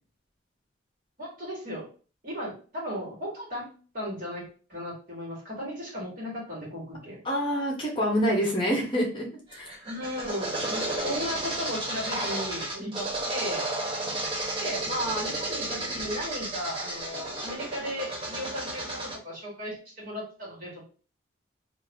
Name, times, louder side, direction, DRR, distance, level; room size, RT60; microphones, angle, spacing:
voice 1, 1.2-1.9 2.2-3.7 3.9-7.2 9.8-13.6 14.6-20.8, equal, 45° right, -4 dB, 1.5 m, -35 dB
voice 2, 7.2-9.3 9.5-9.8 12.8-13.0, equal, 25° left, -1 dB, 0.8 m, -27 dB
sound 1, 9.5-19.2, right 1 dB, 25° right, 0.6 m, -32 dB
2.7 x 2.5 x 3.5 m, 0.38 s
head